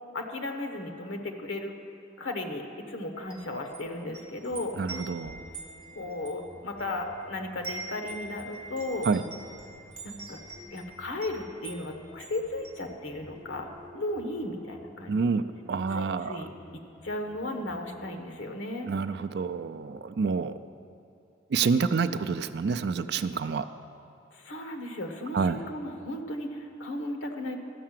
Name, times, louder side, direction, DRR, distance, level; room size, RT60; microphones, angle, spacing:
voice 1, 0.1-1.7 2.2-4.8 5.9-9.1 10.0-10.4 10.7-15.4 15.9-16.5 17.0-18.9 24.3-27.6, left 1 dB, 85° left, 5 dB, 1.0 m, -35 dB
Wind chime, 3.1-7.2 7.5-13.4, right 3 dB, 25° right, 1.9 m, -44 dB
sound 1, 4.5-18.2, left 1 dB, 10° right, 2.3 m, -52 dB
voice 2, 4.8-5.4 9.1-9.2 15.1-15.4 15.7-16.5 18.8-20.5 21.5-23.7 25.3-25.6, right 5 dB, 55° right, 11 dB, 0.4 m, -28 dB
13.0 x 5.7 x 7.5 m, 2.6 s
head